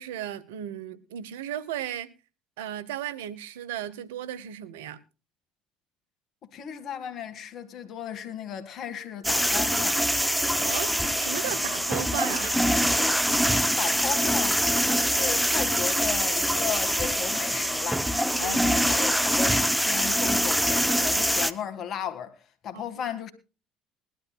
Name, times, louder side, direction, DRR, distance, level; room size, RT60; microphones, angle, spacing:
voice 1, 0.0-2.1 2.6-5.0 10.6-10.9 11.2-12.6 18.4-18.6 22.7-22.8, right 11 dB, 85° right, 0.8 m, -35 dB
voice 2, 6.5-10.0 13.8-22.4 22.6-23.3, left 8 dB, 55° left, 1.8 m, -35 dB
sound 1, 9.2-21.5, equal, 5° right, 0.9 m, -24 dB
21.0 x 12.0 x 2.3 m
hypercardioid pair, 75°, 0 cm